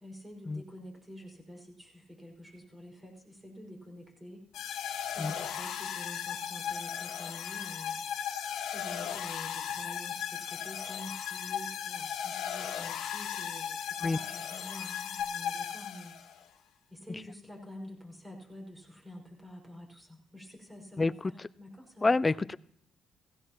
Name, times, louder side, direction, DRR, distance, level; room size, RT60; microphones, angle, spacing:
voice 1, 0.0-4.4 4.8-8.1 8.7-16.2 16.9-22.1, left 1 dB, 15° right, 0 dB, 5.4 m, -48 dB
sound 1, 4.5-16.4, left 8 dB, 85° left, 1.5 m, -36 dB
voice 2, 21.0-21.3 22.0-22.6, left 3 dB, 25° left, 17 dB, 0.4 m, -27 dB
16.5 x 16.0 x 3.0 m, 0.65 s
cardioid pair, 90°, 0 cm